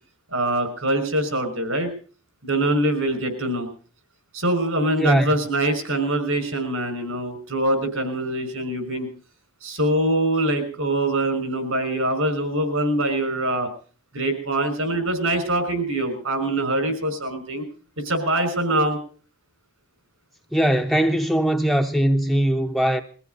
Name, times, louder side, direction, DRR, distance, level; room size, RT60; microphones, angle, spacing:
voice 1, 0.3-1.9 2.4-3.7 4.3-9.1 9.6-13.7 14.1-17.6 18.0-19.0, right 1 dB, 70° right, 5.8 m, -23 dB
voice 2, 5.0-5.3 20.5-23.0, right 1 dB, ahead, 0.8 m, -20 dB
23.0 x 15.0 x 4.0 m
head